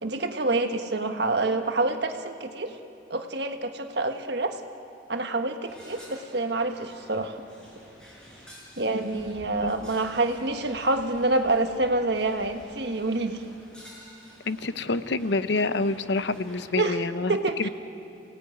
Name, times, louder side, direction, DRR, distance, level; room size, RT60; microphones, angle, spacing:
voice 1, 0.0-2.7 3.1-4.6 5.1-7.4 8.8-13.4 16.8-17.0 17.3-17.7, right 2 dB, 65° right, 6 dB, 1.4 m, -27 dB
sound 1, 5.7-16.8, equal, 5° left, 5.6 m, -50 dB
voice 2, 14.5-17.7, left 3 dB, 70° left, 12 dB, 0.8 m, -27 dB
27.5 x 18.0 x 9.3 m, 2.7 s
head